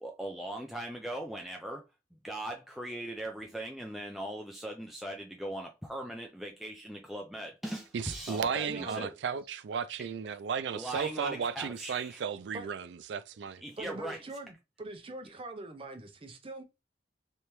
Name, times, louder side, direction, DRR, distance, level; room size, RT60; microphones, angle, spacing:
voice 1, 0.0-1.8 2.2-9.1 10.0-10.1 10.7-12.2 13.6-14.2, right 1 dB, ahead, 0.3 m, -39 dB
voice 2, 7.9-13.6, right 6 dB, 75° right, 0.4 m, -34 dB
voice 3, 8.7-9.1 12.5-12.7 13.8-16.6, right 2 dB, 30° right, 0.7 m, -43 dB
3.3 x 2.8 x 3.0 m
head